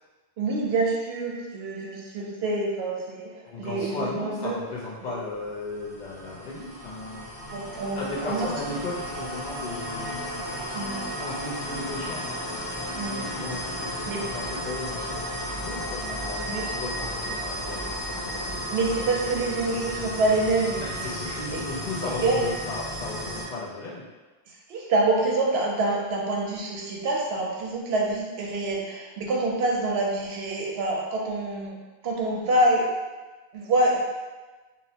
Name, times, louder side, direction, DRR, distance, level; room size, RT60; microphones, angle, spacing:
voice 1, 0.4-3.3 3.6-4.6 5.1-5.2 7.5-8.5 10.7-11.0 13.0-13.2 14.1-14.2 16.5-16.6 18.7-20.8 21.5-21.6 22.2-22.4 24.7-31.8 32.0-32.9 33.5-34.1, right 2 dB, 80° right, -2 dB, 0.8 m, -26 dB
voice 2, 3.4-7.3 8.0-10.5 11.2-12.3 13.2-18.9 20.8-24.0, left 3 dB, 55° left, -7 dB, 0.6 m, -36 dB
sound 1, 5.4-23.5, equal, 35° left, 1.1 m, -34 dB
2.7 x 2.0 x 2.7 m, 1.2 s
omnidirectional pair, 1.0 m